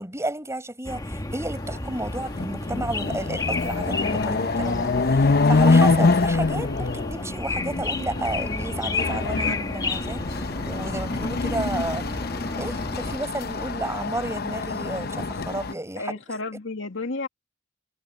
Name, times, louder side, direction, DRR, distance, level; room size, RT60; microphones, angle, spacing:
voice 1, 0.0-12.0 12.6-16.1, right 2 dB, 15° right, 6.6 m, -32 dB
sound 1, 0.8-13.2, left 2 dB, 20° left, 1.3 m, -32 dB
Chatter / Car passing by / Motorcycle, 1.7-1.8 2.2-15.7, left 3 dB, 50° left, 0.8 m, -25 dB
voice 2, 16.0-17.3, left 3 dB, 70° left, 2.3 m, -32 dB
head